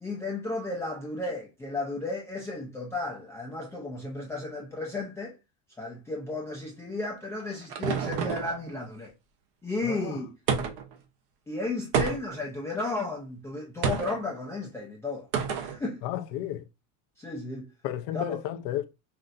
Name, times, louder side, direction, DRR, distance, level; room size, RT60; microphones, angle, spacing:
voice 1, 0.0-5.3 5.8-9.1 9.6-10.3 11.5-15.3 15.6-16.0 17.2-17.7 18.1-18.4, left 2 dB, 5° left, 0.4 m, -34 dB
sound 1, 7.0-8.6 10.5-11.0 11.9-12.5 13.8-14.2 15.3-15.8, right 6 dB, 60° right, 0.9 m, -29 dB
voice 2, 9.8-10.2 16.0-16.6 17.8-18.9, left 12 dB, 50° left, 0.6 m, -32 dB
5.8 x 2.6 x 2.5 m
cardioid pair, 180°, 38 cm